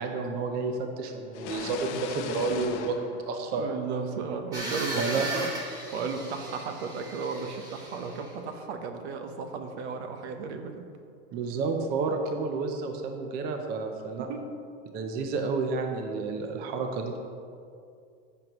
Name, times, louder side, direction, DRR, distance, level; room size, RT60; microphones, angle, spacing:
voice 1, 0.0-3.7 4.9-5.3 11.3-14.3 14.9-17.2, right 4 dB, 30° right, 4 dB, 0.6 m, -30 dB
sound 1, 1.3-4.1, left 7 dB, 85° left, 0.9 m, -39 dB
voice 2, 3.5-5.5 5.9-10.9 14.2-14.5, right 5 dB, 75° right, 6 dB, 1.1 m, -35 dB
sound 2, 4.5-8.3, right 1 dB, 10° right, 1.4 m, -37 dB
14.5 x 6.2 x 3.0 m, 2.4 s
supercardioid pair, 155°, 34 cm